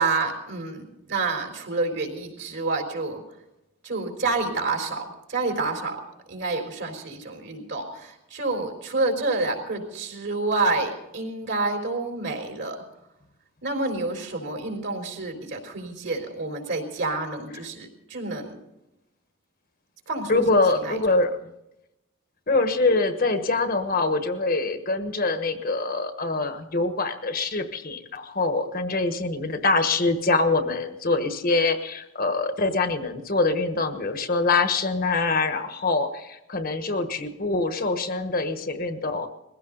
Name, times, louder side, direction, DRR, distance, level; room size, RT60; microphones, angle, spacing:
voice 1, 0.0-3.2 3.8-6.0 6.3-12.8 13.6-18.6 20.1-21.0, right 3 dB, 55° right, 4 dB, 4.0 m, -28 dB
voice 2, 20.3-21.4 22.5-39.3, left 3 dB, 45° left, 8 dB, 1.3 m, -24 dB
21.5 x 16.0 x 4.0 m, 0.89 s
head